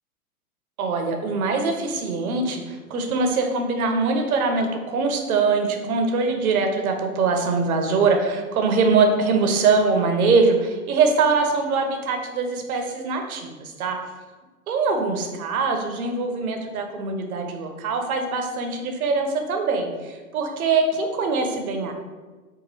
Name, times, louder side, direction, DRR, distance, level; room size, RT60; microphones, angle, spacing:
voice 1, 0.8-13.5 13.8-14.0 14.7-21.9, right 4 dB, 70° right, 4 dB, 0.7 m, -22 dB
2.9 x 2.5 x 2.6 m, 1.3 s
hypercardioid pair, 120°, 45 cm